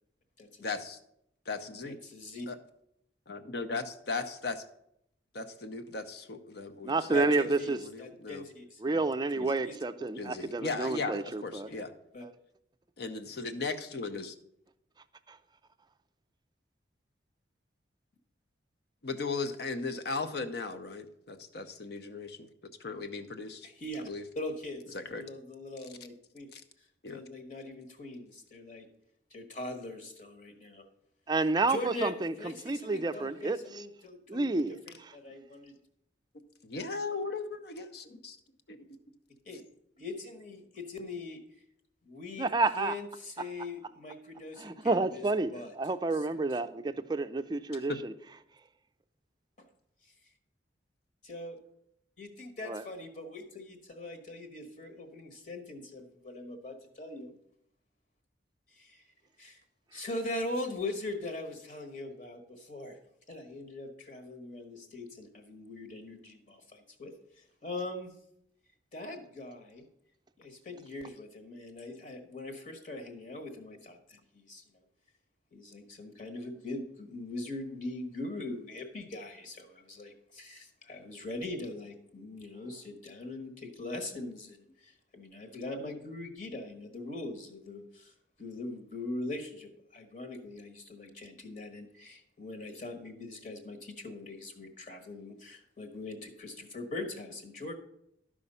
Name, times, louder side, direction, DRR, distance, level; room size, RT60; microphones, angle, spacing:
voice 1, 0.6-1.0 1.5-2.0 2.5-2.6 3.3-4.6 5.3-7.3 7.6-8.4 8.9-9.0 9.3-9.5 10.2-11.9 13.0-14.3 19.0-22.5 22.8-23.7 24.1-24.2 24.9-25.2 26.5-26.6 27.0-27.2 36.6-38.4 38.7-39.0 47.7-48.0, left 4 dB, 60° left, 0.8 m, -37 dB
voice 2, 1.9-2.5 7.1-8.8 9.4-10.1 11.6-11.8 12.1-12.3 23.6-24.0 24.3-26.5 26.8-26.9 27.1-28.9 29.3-30.8 31.7-35.7 39.4-39.7 40.0-41.4 42.0-45.7 46.1-46.8 49.6-49.7 50.0-50.1 51.2-51.6 52.2-57.4 58.7-59.1 59.4-59.6 59.9-63.0 63.3-68.1 68.9-69.9 70.4-74.6 75.5-97.7, left 2 dB, 45° left, 1.3 m, -41 dB
voice 3, 6.8-7.8 8.8-11.7 31.3-32.3 32.7-33.6 34.3-34.7 42.4-42.9 44.6-45.5 45.8-47.9 52.7-52.8, right 3 dB, 25° right, 0.4 m, -29 dB
12.5 x 5.0 x 5.5 m
head